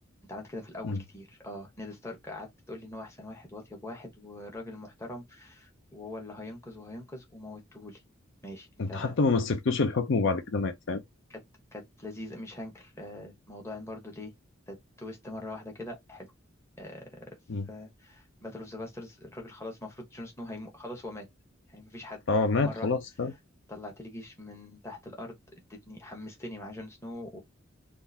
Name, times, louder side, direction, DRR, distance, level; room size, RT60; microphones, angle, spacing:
voice 1, 0.2-8.0 8.4-9.2 11.3-11.4 11.7-14.3 14.7-16.3 16.8-17.4 17.7-21.3 21.7-22.2 22.6-23.0 23.7-25.4 25.7-27.4, left 1 dB, 15° left, 1.1 m, -42 dB
voice 2, 8.8-11.0 17.5-17.7 22.3-23.3, left 3 dB, 65° left, 0.5 m, -27 dB
3.7 x 2.5 x 2.7 m
head